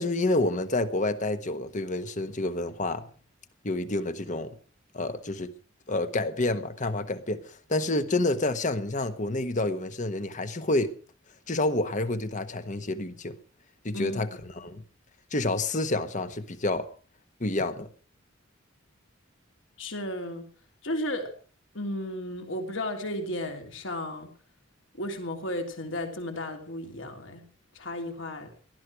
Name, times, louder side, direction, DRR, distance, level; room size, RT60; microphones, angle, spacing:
voice 1, 0.0-3.1 3.6-4.5 4.9-5.5 5.9-10.9 11.5-13.4 13.8-14.8 15.3-16.9 17.4-17.9, left 2 dB, 35° left, 1.2 m, -28 dB
voice 2, 13.9-14.4 19.8-20.5 20.8-21.3 21.7-24.3 25.0-27.4 27.7-28.5, left 1 dB, 65° left, 3.3 m, -34 dB
18.5 x 12.5 x 4.7 m
head